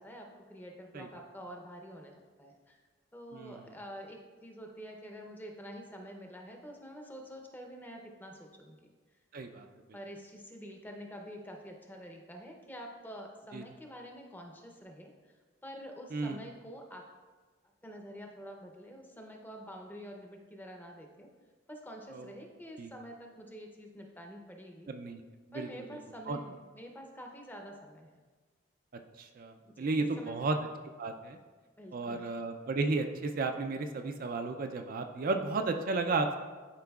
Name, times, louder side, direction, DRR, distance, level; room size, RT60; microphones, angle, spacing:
voice 1, 0.0-2.8 3.1-8.9 9.9-17.1 17.8-21.3 21.7-24.9 25.5-28.2 29.8-30.5 31.8-32.3, equal, 10° left, 2 dB, 0.6 m, -47 dB
voice 2, 9.3-9.7 13.5-13.6 16.1-16.4 22.1-22.3 22.8-22.9 24.9-25.2 25.5-25.7 26.3-26.4 29.2-30.6 31.0-31.4 31.9-36.3, right 3 dB, 45° right, 5 dB, 0.4 m, -33 dB
11.5 x 4.8 x 2.3 m, 1.4 s
head